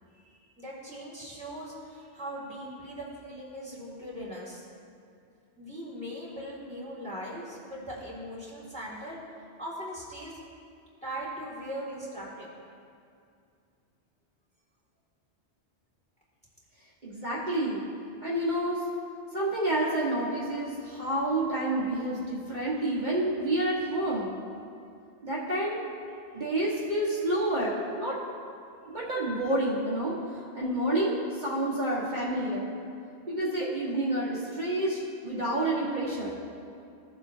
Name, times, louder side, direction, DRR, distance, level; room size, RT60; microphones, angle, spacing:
voice 1, 0.1-4.6 5.6-9.2 9.6-10.4 11.0-12.5, equal, 5° left, -7 dB, 2.0 m, -40 dB
voice 2, 17.0-17.8 18.2-18.8 19.3-24.3 25.2-25.8 26.3-28.2 28.9-32.7 33.3-36.3, right 1 dB, 45° right, -7 dB, 1.5 m, -29 dB
15.5 x 7.4 x 2.7 m, 2.4 s
omnidirectional pair, 1.1 m